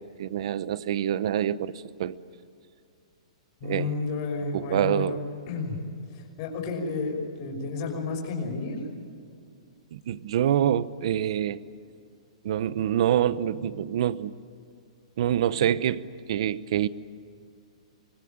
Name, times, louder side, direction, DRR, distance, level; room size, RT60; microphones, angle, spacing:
voice 1, 0.0-2.2 3.6-3.9 4.5-5.2 9.9-11.6 12.4-14.3 15.2-16.9, right 10 dB, 55° right, 16 dB, 0.9 m, -26 dB
voice 2, 3.6-5.2 5.5-5.8 6.1-8.8, left 3 dB, 40° left, 1 dB, 5.9 m, -31 dB
25.0 x 20.5 x 9.1 m, 2.3 s
hypercardioid pair, 155°, 3 cm